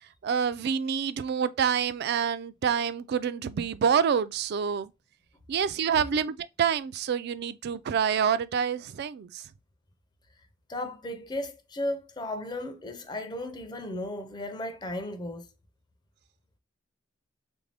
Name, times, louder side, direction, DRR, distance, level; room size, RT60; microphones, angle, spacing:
voice 1, 0.0-4.9 5.5-9.5, right 7 dB, 55° right, 0.3 m, -27 dB
voice 2, 10.7-15.5, left 1 dB, 20° left, 0.5 m, -35 dB
3.6 x 2.6 x 3.2 m
head